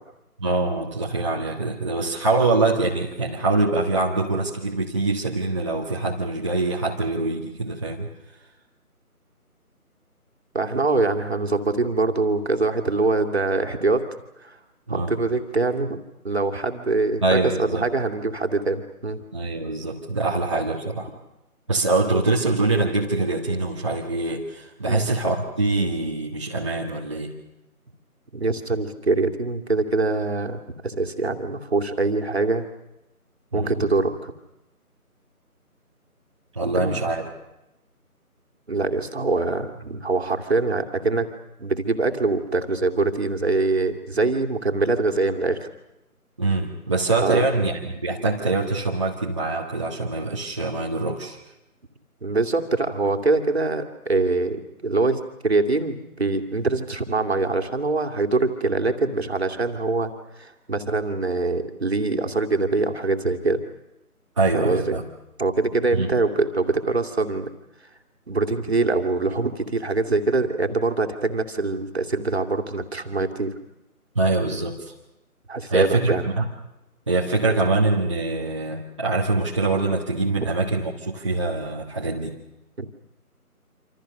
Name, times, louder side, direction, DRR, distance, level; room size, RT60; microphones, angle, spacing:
voice 1, 0.4-8.1 14.9-15.1 17.2-17.8 19.3-21.1 21.7-27.3 33.5-33.7 36.5-37.3 46.4-51.4 64.4-65.0 65.9-66.1 74.1-74.9 75.7-76.5 77.1-82.4, right 3 dB, 20° right, -4 dB, 1.6 m, -24 dB
voice 2, 10.5-14.1 14.4-14.6 14.9-16.0 16.2-19.2 24.9-25.0 28.3-32.7 33.5-34.3 36.6-37.1 38.7-41.3 41.6-45.7 47.2-47.5 52.2-63.6 64.5-65.0 65.4-67.5 68.3-73.5 75.5-76.3 80.4-80.5 82.8-82.9, right 3 dB, 45° right, 5 dB, 2.6 m, -24 dB
27.0 x 27.0 x 6.6 m, 0.92 s
figure-of-eight pair, 160°, 45 cm